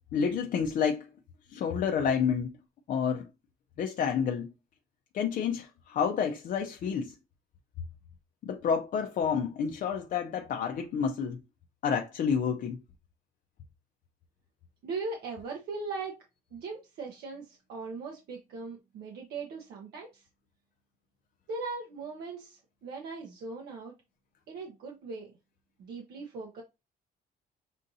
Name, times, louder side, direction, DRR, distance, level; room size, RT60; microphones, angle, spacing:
voice 1, 0.1-1.1 1.5-2.5 2.9-3.3 3.8-4.5 5.1-7.2 8.4-11.4 11.8-12.8, left 7 dB, 55° left, 0.5 m, -29 dB
voice 2, 14.8-16.2 16.5-20.3 21.5-23.9 24.5-25.4 25.8-26.6, right 4 dB, 70° right, 0.9 m, -39 dB
6.3 x 2.6 x 2.7 m
cardioid pair, 110°, 17 cm